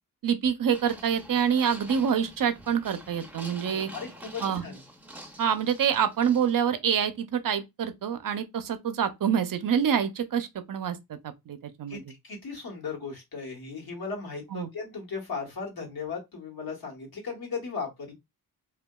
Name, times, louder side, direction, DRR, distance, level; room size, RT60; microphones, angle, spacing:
voice 1, 0.2-3.9 4.4-4.6 5.4-12.0 14.5-14.7, right 8 dB, 60° right, 0.5 m, -26 dB
sound 1, 0.7-6.6, right 1 dB, 5° right, 0.5 m, -46 dB
voice 2, 3.7-4.8 11.9-18.1, left 5 dB, 75° left, 1.1 m, -37 dB
2.8 x 2.2 x 2.2 m
wide cardioid pair, 85°, 37 cm